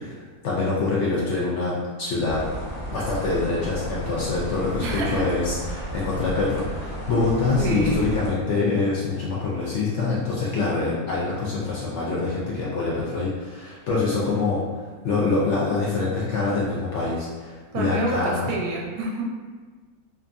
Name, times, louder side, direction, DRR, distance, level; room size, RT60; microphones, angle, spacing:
voice 1, 0.0-2.4 2.9-14.6 15.0-18.5, left 3 dB, 65° left, -6 dB, 0.7 m, -25 dB
sound 1, 2.3-8.3, right 1 dB, 25° left, 0.8 m, -33 dB
voice 2, 4.8-5.3 7.6-8.0 17.7-19.2, right 1 dB, 90° right, -1 dB, 1.1 m, -27 dB
2.8 x 2.4 x 2.5 m, 1.5 s
omnidirectional pair, 1.6 m